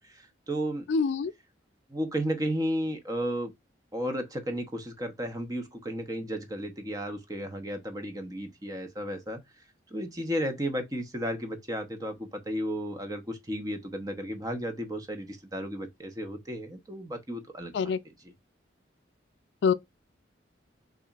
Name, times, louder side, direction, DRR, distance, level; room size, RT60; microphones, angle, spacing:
voice 1, 0.0-0.9 1.9-3.5 3.9-9.4 9.9-17.7 18.0-18.3, equal, 20° right, 0.8 m, -33 dB
voice 2, 0.9-1.3 17.7-18.0 19.6-19.7, left 5 dB, 70° left, 0.4 m, -25 dB
6.8 x 2.4 x 2.4 m
head